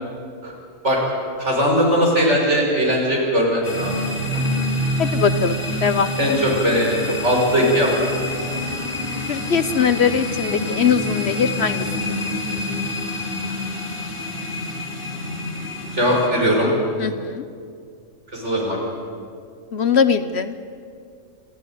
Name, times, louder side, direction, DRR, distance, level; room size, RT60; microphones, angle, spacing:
voice 1, 1.4-4.0 6.2-7.9 15.9-16.7 18.3-18.8, equal, 60° right, -2 dB, 6.1 m, -19 dB
sound 1, 3.6-16.3, left 1 dB, 40° left, 3.1 m, -27 dB
voice 2, 5.0-6.1 9.3-11.8 17.0-17.4 19.7-20.5, left 6 dB, 55° left, 12 dB, 1.1 m, -21 dB
28.0 x 14.0 x 9.9 m, 2.3 s
omnidirectional pair, 1.4 m